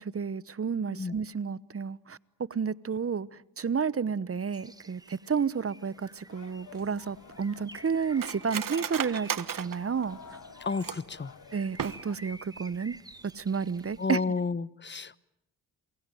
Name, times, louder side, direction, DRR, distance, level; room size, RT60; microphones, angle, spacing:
voice 1, 0.0-3.3 3.6-10.2 11.5-13.0 13.2-14.2, right 6 dB, 35° right, 1.0 m, -31 dB
Bird, 4.5-14.1, right 1 dB, 10° right, 1.3 m, -51 dB
sound 1, 6.3-12.2, left 7 dB, 50° left, 1.3 m, -52 dB
Cutlery silverware, 6.7-11.2 11.7-12.4 12.7-12.8 13.1-13.5 13.8-14.0, right 9 dB, 50° right, 1.2 m, -37 dB
voice 2, 10.6-11.3 14.0-15.2, left 4 dB, 25° left, 1.1 m, -31 dB
27.5 x 22.5 x 9.2 m
supercardioid pair, 55°, 41 cm